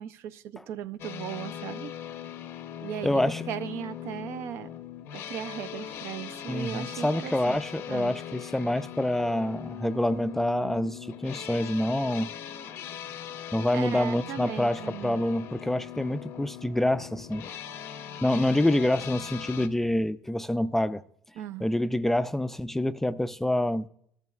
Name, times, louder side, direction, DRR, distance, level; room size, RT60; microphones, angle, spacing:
voice 1, 0.0-1.9 2.8-4.7 5.1-7.6 7.9-8.1 13.7-15.2 21.4-21.6, right 10 dB, 65° right, 0.5 m, -37 dB
sound 1, 1.0-19.7, left 10 dB, 65° left, 0.7 m, -40 dB
voice 2, 3.0-3.4 6.5-12.3 13.5-17.4 18.2-21.0 21.6-23.9, left 1 dB, 5° left, 0.3 m, -27 dB
13.5 x 10.5 x 2.3 m
cardioid pair, 115°, 5 cm